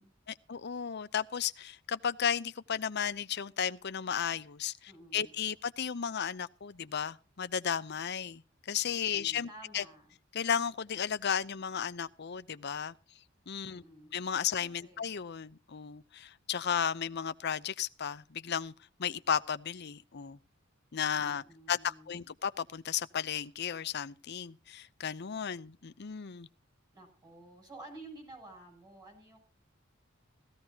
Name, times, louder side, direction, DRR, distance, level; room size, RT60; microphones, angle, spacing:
voice 1, 0.3-9.5 9.7-9.8 10.3-12.9 13.5-13.8 14.1-18.7 19.0-20.4 20.9-26.5, left 8 dB, 55° left, 0.7 m, -34 dB
voice 2, 4.9-5.4 9.1-10.1 13.7-14.2 14.6-15.1 21.1-22.3 26.9-29.4, right 2 dB, 20° right, 7.3 m, -52 dB
17.0 x 15.0 x 2.8 m
head